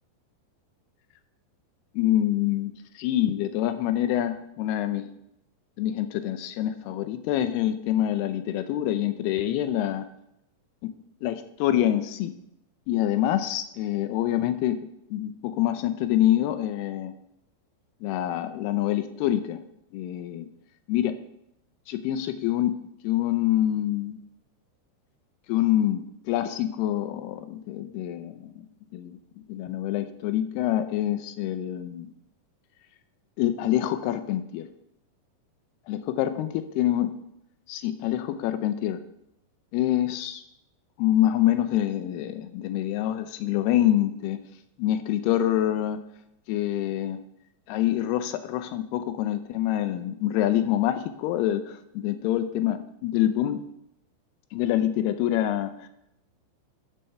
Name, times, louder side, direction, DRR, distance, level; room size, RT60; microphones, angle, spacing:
voice 1, 1.9-5.1 5.8-10.1 10.8-10.9 11.2-12.3 12.9-14.8 15.1-17.1 18.0-19.6 19.9-20.5 20.9-21.2 21.9-22.7 23.0-24.2 25.5-28.7 28.9-29.2 29.5-32.1 33.4-34.7 35.9-37.1 37.7-39.0 39.7-40.4 41.0-44.4 44.8-46.0 46.5-47.2 47.7-53.6 54.5-55.9, left 12 dB, 80° left, 10 dB, 2.4 m, -26 dB
12.0 x 4.4 x 6.7 m, 0.80 s
omnidirectional pair, 5.0 m